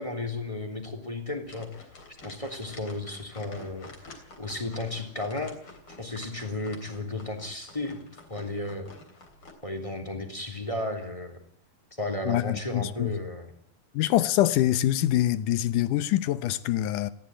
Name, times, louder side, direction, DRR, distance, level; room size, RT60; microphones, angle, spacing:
voice 1, 0.0-1.7 2.2-5.5 5.9-8.0 8.3-8.9 9.6-11.4 12.0-13.5, left 2 dB, 10° left, 2.8 m, -34 dB
sound 1, 1.4-9.5, left 3 dB, 35° left, 4.0 m, -49 dB
voice 2, 12.2-13.1 13.9-17.1, left 13 dB, 70° left, 2.2 m, -25 dB
19.5 x 15.0 x 8.9 m
omnidirectional pair, 4.3 m